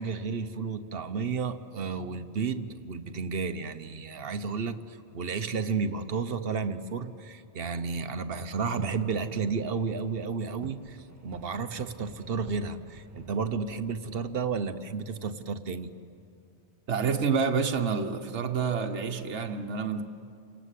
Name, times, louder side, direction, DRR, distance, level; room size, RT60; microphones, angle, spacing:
voice 1, 0.0-15.9, right 5 dB, 55° right, 9 dB, 1.1 m, -32 dB
sound 1, 8.4-16.0, right 1 dB, 15° right, 1.3 m, -52 dB
voice 2, 16.9-20.0, right 5 dB, 75° right, 4 dB, 1.4 m, -28 dB
29.5 x 19.0 x 8.3 m, 2.6 s
omnidirectional pair, 1.2 m